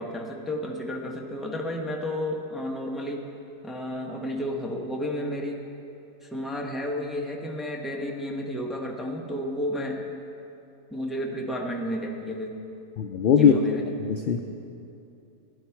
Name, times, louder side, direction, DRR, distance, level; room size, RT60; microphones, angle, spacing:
voice 1, 0.0-3.2 3.6-5.6 6.2-10.1 10.9-12.6 13.3-13.9, left 1 dB, ahead, 0 dB, 0.7 m, -32 dB
voice 2, 13.0-13.5 14.0-14.5, left 8 dB, 70° left, 4 dB, 0.5 m, -20 dB
15.5 x 11.5 x 4.6 m, 2.7 s
omnidirectional pair, 1.6 m